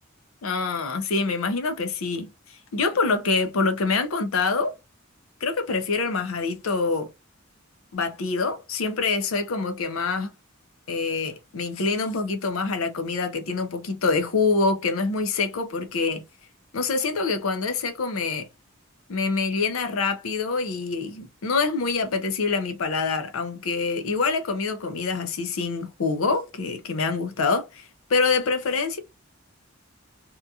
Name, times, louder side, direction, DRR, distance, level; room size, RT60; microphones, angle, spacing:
voice 1, 0.4-4.7 5.4-7.1 7.9-10.3 10.9-16.2 16.7-18.5 19.1-29.0, left 4 dB, 85° left, 0.6 m, -25 dB
2.9 x 2.3 x 2.6 m
head